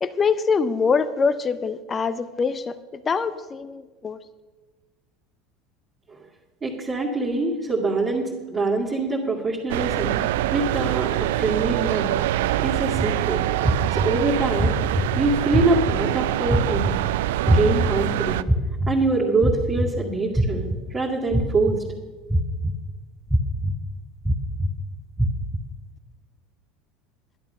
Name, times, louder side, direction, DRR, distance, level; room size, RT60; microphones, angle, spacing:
voice 1, 0.0-4.2, left 5 dB, 25° left, 14 dB, 0.7 m, -24 dB
voice 2, 6.6-12.2 12.6-13.4 13.9-17.0 17.5-18.4 18.9-21.8, right 3 dB, 25° right, -6 dB, 2.2 m, -24 dB
sound 1, 9.7-18.4, right 14 dB, 65° right, 0.3 m, -24 dB
sound 2, 12.9-13.1 13.6-14.1 14.6-15.0 15.5-15.9 16.5-16.9 17.5-17.9 18.5-18.9 19.4-19.9 20.3-20.7 21.3-21.7 22.3-22.7 23.3-23.7 24.2-24.7 25.2-25.6, right 1 dB, ahead, 1.2 m, -21 dB
11.5 x 11.0 x 5.6 m, 1.3 s
figure-of-eight pair, 75°, 0 cm